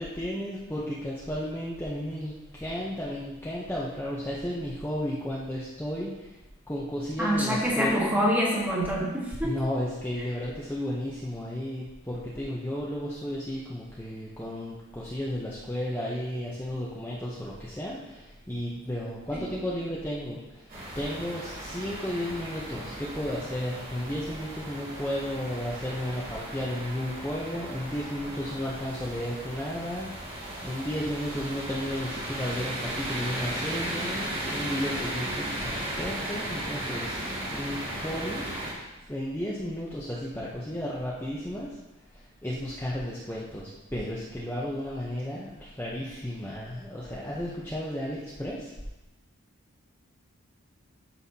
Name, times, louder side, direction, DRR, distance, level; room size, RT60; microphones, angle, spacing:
voice 1, 0.0-6.4 6.7-8.1 9.4-20.7 20.9-34.2 34.5-38.5 39.1-41.8 42.1-48.7, equal, 10° left, -7 dB, 0.8 m, -33 dB
voice 2, 7.2-9.6 19.3-19.5, equal, 10° right, -4 dB, 1.5 m, -26 dB
sound 1, 20.7-38.7, right 1 dB, 40° right, 2.3 m, -36 dB
12.5 x 5.7 x 2.8 m, 1.0 s
head